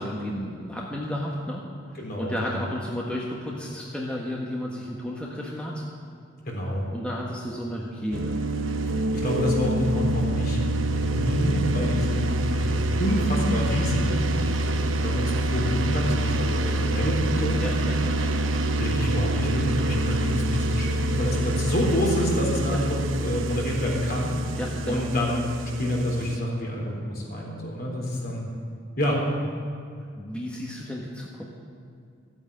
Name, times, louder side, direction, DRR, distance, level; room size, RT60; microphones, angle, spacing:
voice 1, 0.0-1.6 1.9-5.8 6.9-8.4 17.6-18.5 22.7-22.8 24.6-25.1 30.1-31.4, equal, 5° left, -3 dB, 1.3 m, -33 dB
voice 2, 2.0-2.7 6.5-6.8 9.1-10.6 10.9-14.7 15.0-17.6 18.8-24.3 24.8-25.5 25.8-28.5 29.0-29.2, equal, 50° left, -2 dB, 3.8 m, -27 dB
sound 1, 8.1-26.4, right 1 dB, 90° right, 0.9 m, -26 dB
14.5 x 9.0 x 8.7 m, 2.4 s
head